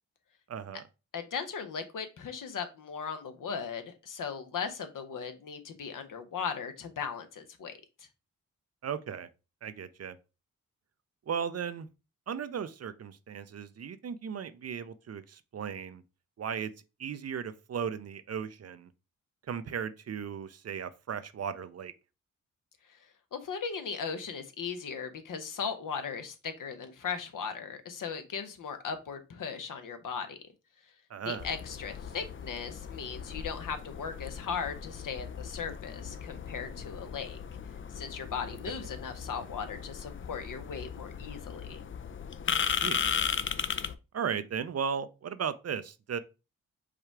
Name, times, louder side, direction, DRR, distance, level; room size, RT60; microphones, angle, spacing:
voice 1, 0.5-0.8 8.8-9.3 9.6-10.2 11.3-11.9 12.3-16.0 16.4-16.7 17.0-18.9 19.5-21.9 31.1-31.5 38.7-38.8 42.6-43.0 44.1-46.2, right 7 dB, 50° right, 0.5 m, -36 dB
voice 2, 1.1-8.1 23.3-30.4 31.3-37.4 37.9-41.8, left 6 dB, 65° left, 0.9 m, -38 dB
sound 1, 31.4-43.9, left 7 dB, 35° left, 0.5 m, -36 dB
4.9 x 2.3 x 4.4 m
supercardioid pair, 45°, 34 cm